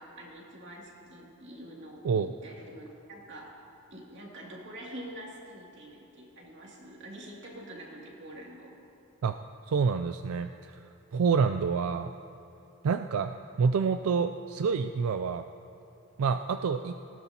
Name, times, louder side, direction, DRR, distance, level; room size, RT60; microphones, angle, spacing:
voice 1, 0.0-3.5 3.9-8.7, right 1 dB, 55° right, -3 dB, 2.5 m, -46 dB
voice 2, 9.7-10.8 11.1-12.1 12.8-15.5 16.2-16.9, right 5 dB, 90° right, 9 dB, 0.4 m, -27 dB
19.0 x 16.5 x 2.8 m, 2.8 s
head